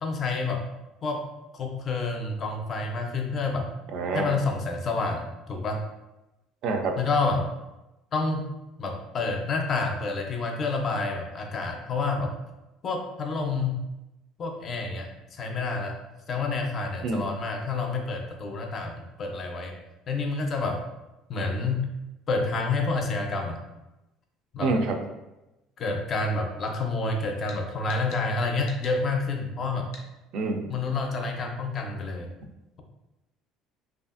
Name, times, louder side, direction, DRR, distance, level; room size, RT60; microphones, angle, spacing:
voice 1, 0.0-0.7 1.0-1.3 1.5-3.7 4.1-5.8 7.0-7.5 8.1-8.4 8.8-12.3 12.8-13.9 14.4-16.0 16.3-19.8 20.1-20.8 21.3-21.9 22.3-23.6 24.5-24.8 25.8-29.9 30.7-32.3, left 3 dB, 40° left, 3 dB, 0.4 m, -28 dB
voice 2, 3.9-4.3 6.6-6.9 17.0-17.2 24.6-25.0 30.3-30.7, right 3 dB, 60° right, 3 dB, 0.3 m, -26 dB
sound 1, 27.5-27.6 27.9-28.2 28.7-29.0 29.9-30.1, left 3 dB, 90° left, 0.5 m, -45 dB
2.7 x 2.4 x 2.4 m, 0.96 s
cardioid pair, 135°, 0 cm